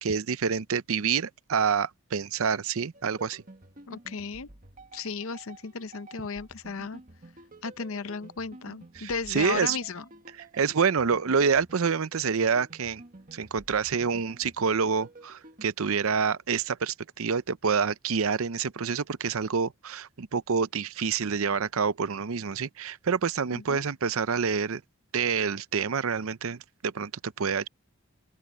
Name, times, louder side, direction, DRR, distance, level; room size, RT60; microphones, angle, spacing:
voice 1, 0.0-3.4 9.0-9.8 10.6-13.0 13.3-24.8 25.1-27.7, right 6 dB, 65° right, 0.6 m, -27 dB
sound 1, 2.9-15.6, right 2 dB, 35° right, 1.8 m, -51 dB
voice 2, 3.9-4.5 4.9-7.0 7.6-10.0 23.5-23.8, left 5 dB, 65° left, 0.7 m, -35 dB
open air
head